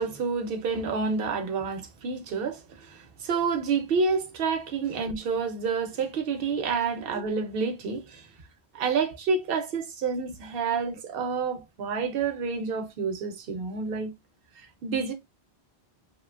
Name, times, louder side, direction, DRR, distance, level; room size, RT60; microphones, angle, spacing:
voice 1, 0.0-8.3 8.7-14.1 14.6-15.1, right 5 dB, 65° right, 0.8 m, -29 dB
2.8 x 2.2 x 2.3 m
omnidirectional pair, 1.1 m